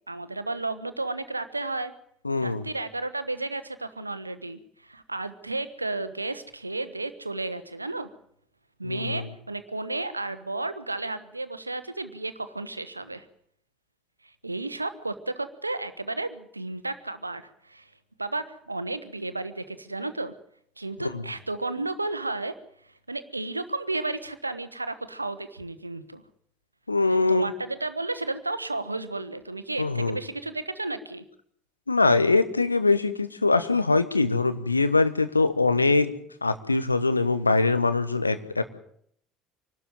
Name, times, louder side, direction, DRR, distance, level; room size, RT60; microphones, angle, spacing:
voice 1, 0.1-1.9 2.4-8.1 8.8-13.3 14.4-17.9 18.2-20.3 20.8-22.6 23.1-26.2 27.1-31.2, right 2 dB, 85° right, 13 dB, 1.0 m, -33 dB
voice 2, 2.2-2.6 8.8-9.2 21.0-21.2 26.9-27.5 29.8-30.2 31.9-36.1 36.4-38.6, left 3 dB, 85° left, 11 dB, 1.1 m, -23 dB
25.0 x 12.5 x 9.2 m, 0.67 s
figure-of-eight pair, 60°, 0 cm